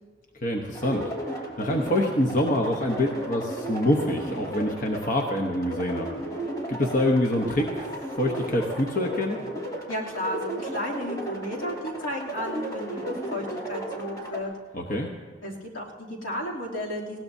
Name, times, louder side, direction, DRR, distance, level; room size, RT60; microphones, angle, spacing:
voice 1, 0.4-1.1 1.6-6.1 6.7-9.4 14.7-15.1, left 1 dB, 40° left, 2 dB, 0.9 m, -25 dB
sound 1, 0.7-14.4, right 1 dB, 20° left, 2.2 m, -35 dB
voice 2, 9.9-14.5 15.4-17.2, equal, 80° left, -4 dB, 2.8 m, -33 dB
19.5 x 17.0 x 2.7 m, 1.5 s
head